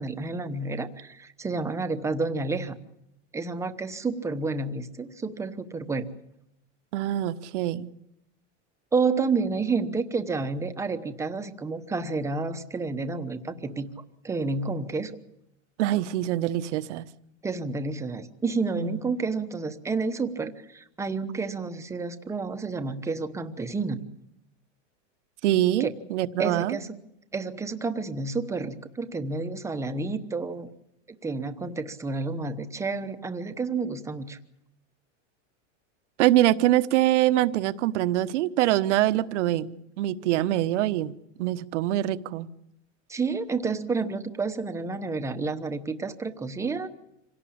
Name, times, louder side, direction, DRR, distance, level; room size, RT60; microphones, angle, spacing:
voice 1, 0.0-2.7 3.3-6.1 8.9-13.9 14.2-15.2 17.4-24.0 25.8-25.9 26.4-26.9 27.3-30.7 31.2-34.4 43.1-46.9, right 4 dB, 10° right, 9 dB, 1.0 m, -30 dB
voice 2, 6.9-7.9 15.8-17.0 18.8-19.0 25.4-26.8 36.2-41.1 41.4-42.5, right 14 dB, 65° right, 13 dB, 1.2 m, -24 dB
26.5 x 17.5 x 8.7 m, 0.83 s
supercardioid pair, 160°, 38 cm